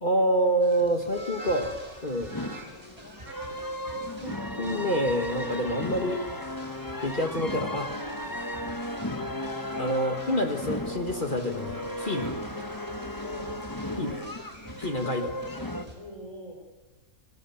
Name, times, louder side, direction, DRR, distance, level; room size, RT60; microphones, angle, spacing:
voice 1, 0.0-1.7 2.0-2.4 4.2-6.2 7.0-7.9 9.8-12.3 14.0-14.1 14.8-15.3, right 1 dB, 35° left, 6 dB, 2.0 m, -27 dB
sound 1, 0.6-16.0, equal, 25° right, 6.6 m, -49 dB
sound 2, 1.1-14.2, right 1 dB, 75° right, 3.8 m, -49 dB
sound 3, 2.3-15.8, left 1 dB, 15° left, 1.6 m, -35 dB
voice 2, 13.2-14.3 14.8-15.3 15.9-16.5, equal, 55° left, 2 dB, 7.1 m, -46 dB
29.0 x 26.5 x 7.3 m, 1.2 s
omnidirectional pair, 1.5 m